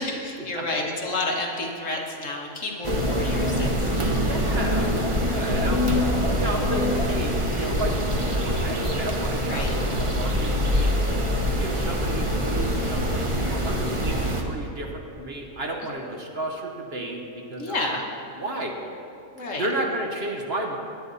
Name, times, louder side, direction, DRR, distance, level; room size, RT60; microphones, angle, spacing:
voice 1, 0.0-3.7 4.0-4.3 5.1-5.5 9.5-9.8 17.6-18.0 19.4-19.6, left 2 dB, 55° left, 0 dB, 1.8 m, -30 dB
sound 1, 2.8-14.4, equal, 25° right, 1.0 m, -24 dB
voice 2, 4.2-5.9 6.3-11.2 11.6-18.0 18.4-18.8 19.6-20.7, right 1 dB, 45° right, 1 dB, 1.3 m, -32 dB
17.0 x 10.5 x 4.1 m, 2.6 s
omnidirectional pair, 1.6 m